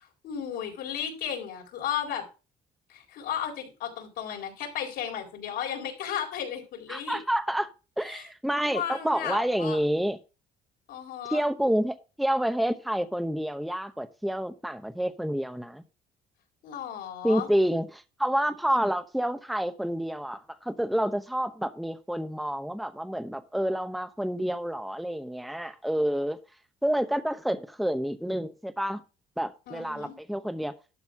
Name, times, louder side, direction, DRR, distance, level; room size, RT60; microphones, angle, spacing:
voice 1, 0.2-2.2 2.9-7.2 8.0-8.3 8.6-9.8 10.9-11.5 16.6-17.5 29.7-30.1, left 9 dB, 80° left, 4.1 m, -34 dB
voice 2, 6.9-7.7 8.0-10.2 11.3-15.8 17.2-26.4 26.8-29.0 29.4-30.7, equal, ahead, 0.8 m, -28 dB
12.0 x 4.0 x 5.9 m
cardioid pair, 110°, 17 cm